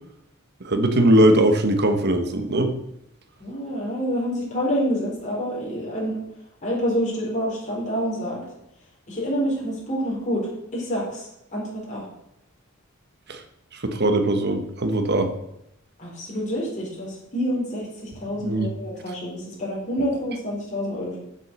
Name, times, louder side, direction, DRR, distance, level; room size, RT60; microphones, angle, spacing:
voice 1, 0.6-2.7 13.3-13.4 13.7-15.3 18.4-18.7, right 1 dB, 50° right, 7 dB, 1.3 m, -20 dB
voice 2, 3.4-6.2 6.6-8.4 9.1-12.0 16.0-21.2, equal, 35° left, -4 dB, 4.2 m, -27 dB
7.7 x 7.5 x 6.7 m, 0.81 s
head